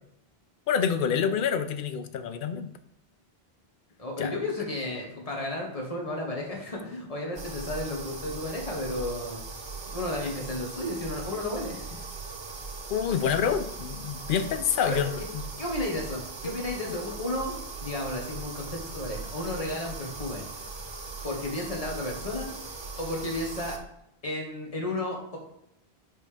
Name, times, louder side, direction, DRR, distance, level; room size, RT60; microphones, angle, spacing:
voice 1, 0.7-2.7 4.2-4.3 12.9-15.4 16.4-16.6, left 7 dB, 60° left, 10 dB, 0.7 m, -27 dB
voice 2, 4.0-9.4 9.9-12.0 14.8-15.0 15.6-20.4 21.2-22.5 23.0-23.8 24.2-25.4, left 1 dB, 35° left, -1 dB, 1.4 m, -33 dB
sound 1, 7.4-23.8, right 4 dB, 35° right, 0.6 m, -39 dB
5.2 x 3.7 x 5.0 m, 0.76 s
omnidirectional pair, 1.0 m